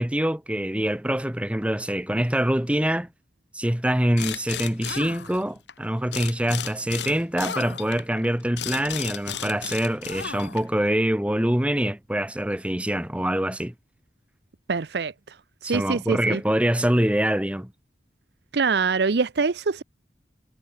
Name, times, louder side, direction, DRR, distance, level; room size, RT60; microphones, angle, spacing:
voice 1, 0.0-3.1 3.5-13.7 15.6-17.7, right 1 dB, 5° right, 1.0 m, -25 dB
sound 1, 4.2-5.7 6.1-10.8, left 8 dB, 85° left, 2.0 m, -34 dB
voice 2, 14.7-15.4 15.6-16.4 18.5-19.8, right 4 dB, 65° right, 0.6 m, -24 dB
head